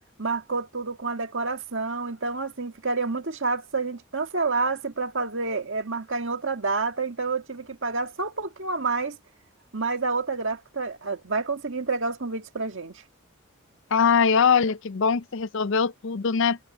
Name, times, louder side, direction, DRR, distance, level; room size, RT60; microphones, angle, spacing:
voice 1, 0.2-9.2 9.7-13.0, right 4 dB, 60° right, 1.8 m, -28 dB
voice 2, 13.9-16.6, left 6 dB, 60° left, 0.5 m, -22 dB
head